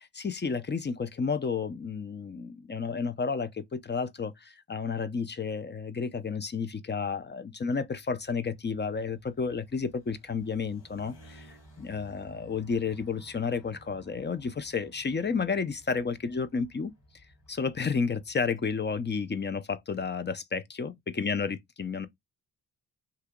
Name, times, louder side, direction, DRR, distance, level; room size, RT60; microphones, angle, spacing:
voice 1, 0.1-16.9 17.5-22.1, left 5 dB, 25° left, 0.5 m, -31 dB
sound 1, 8.0-19.5, right 1 dB, 60° left, 1.8 m, -57 dB
2.8 x 2.8 x 3.6 m
supercardioid pair, 50°, 44 cm